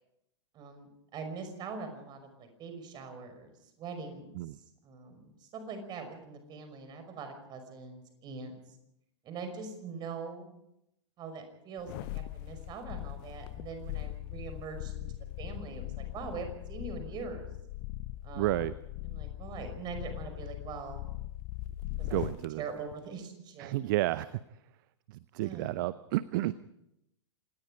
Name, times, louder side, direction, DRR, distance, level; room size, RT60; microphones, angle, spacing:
voice 1, 0.5-4.4 4.8-8.5 9.2-10.5 11.2-15.1 15.4-17.4 18.2-18.7 19.0-21.1 22.0-23.7 25.4-25.8 26.5-26.6, right 5 dB, 30° right, 7 dB, 5.6 m, -43 dB
sound 1, 11.8-22.5 22.9-23.0, left 16 dB, 40° left, 0.8 m, -40 dB
voice 2, 18.3-18.7 22.1-22.6 23.6-24.3 25.3-26.5, right 17 dB, 45° right, 17 dB, 0.7 m, -31 dB
26.5 x 19.5 x 5.2 m, 0.82 s
figure-of-eight pair, 105°, 15 cm